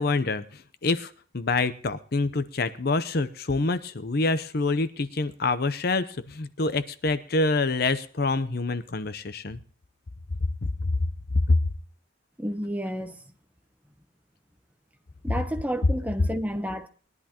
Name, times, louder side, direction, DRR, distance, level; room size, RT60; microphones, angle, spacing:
voice 1, 0.0-9.6 10.8-11.0 11.5-11.6, left 3 dB, 50° left, 0.7 m, -26 dB
voice 2, 12.4-13.2 15.2-16.9, equal, 5° right, 0.8 m, -30 dB
21.0 x 11.0 x 2.9 m
head